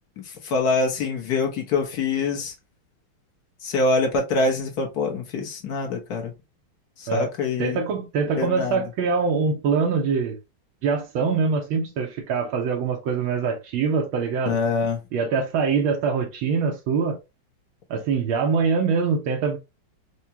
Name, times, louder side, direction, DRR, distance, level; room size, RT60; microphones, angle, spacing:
voice 1, 0.2-2.5 3.6-6.3 7.0-7.8 8.3-8.8 14.5-15.0, left 3 dB, 60° left, 1.3 m, -25 dB
voice 2, 7.6-10.4 10.8-14.6 15.1-17.2 17.9-19.7, right 5 dB, 85° right, 1.6 m, -24 dB
4.8 x 2.2 x 2.8 m
omnidirectional pair, 2.2 m